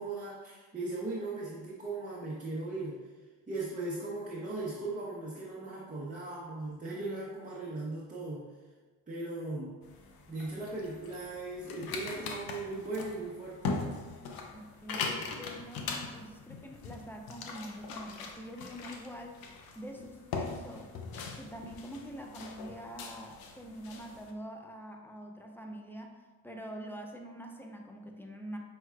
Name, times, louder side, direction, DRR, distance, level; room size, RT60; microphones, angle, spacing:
voice 1, 0.0-3.0 3.5-8.5 9.1-9.7 10.3-13.8, right 2 dB, 20° right, -6 dB, 0.9 m, -38 dB
sound 1, 9.8-24.3, left 4 dB, 65° left, 0.7 m, -41 dB
voice 2, 14.5-20.9 21.4-28.6, equal, 5° left, 2 dB, 0.7 m, -45 dB
5.5 x 3.1 x 2.4 m, 1.3 s
hypercardioid pair, 50°, 39 cm